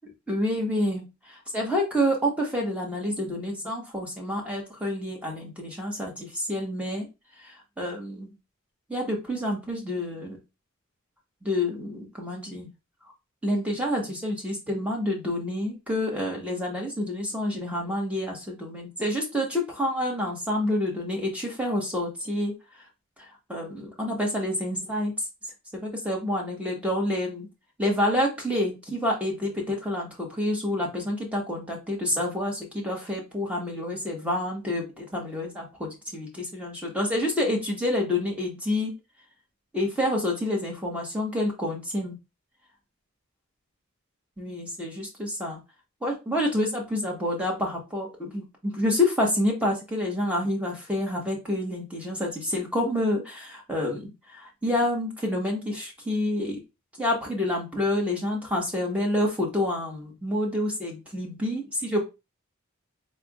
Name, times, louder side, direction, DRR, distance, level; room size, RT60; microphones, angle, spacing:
voice 1, 0.3-7.1 7.4-8.3 8.9-10.4 11.4-12.7 13.4-22.5 23.2-25.1 25.7-27.5 27.8-38.9 39.7-42.2 44.4-45.6 46.0-56.6 57.0-62.0, left 1 dB, 5° right, -1 dB, 1.2 m, -28 dB
4.2 x 3.4 x 2.3 m, 0.26 s
head